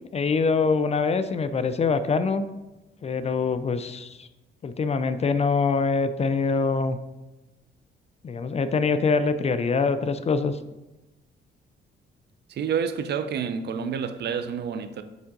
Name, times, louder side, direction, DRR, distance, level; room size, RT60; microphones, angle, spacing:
voice 1, 0.1-2.5 3.0-4.3 4.6-7.0 8.2-10.6, left 4 dB, 35° left, 0.4 m, -24 dB
voice 2, 12.5-15.0, right 7 dB, 60° right, 0.5 m, -29 dB
7.2 x 3.7 x 3.7 m
cardioid pair, 90°, 20 cm